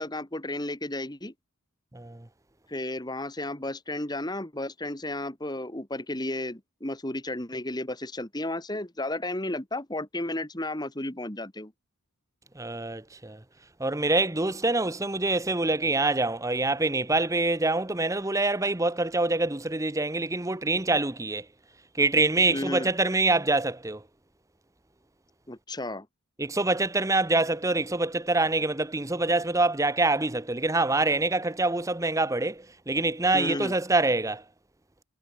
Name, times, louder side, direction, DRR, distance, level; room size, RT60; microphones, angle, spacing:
voice 1, 0.0-1.3 2.7-11.7 22.5-22.9 25.5-26.1 33.3-33.7, left 1 dB, 20° left, 1.9 m, -33 dB
voice 2, 1.9-2.3 12.5-13.4 13.8-21.5 21.9-24.0 26.4-34.4, right 2 dB, 15° right, 0.8 m, -25 dB
head